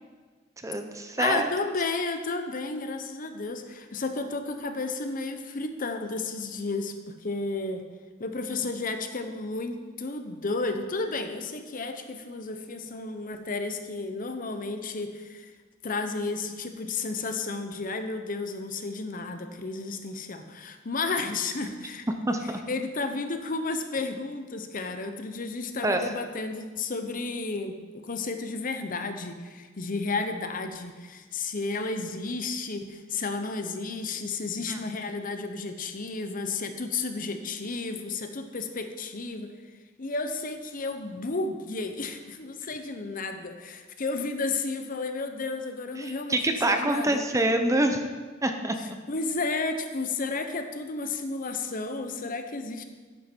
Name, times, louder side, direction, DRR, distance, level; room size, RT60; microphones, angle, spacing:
voice 1, 0.6-1.5 22.3-22.4 25.8-26.0 34.7-34.8 46.0-48.1 48.4-48.8, right 1 dB, 15° right, 6 dB, 0.7 m, -25 dB
voice 2, 1.2-7.8 8.2-15.5 15.8-22.1 22.7-39.5 40.0-47.2 48.8-52.8, left 3 dB, 45° left, 7 dB, 0.9 m, -32 dB
11.0 x 9.9 x 4.5 m, 1.4 s
head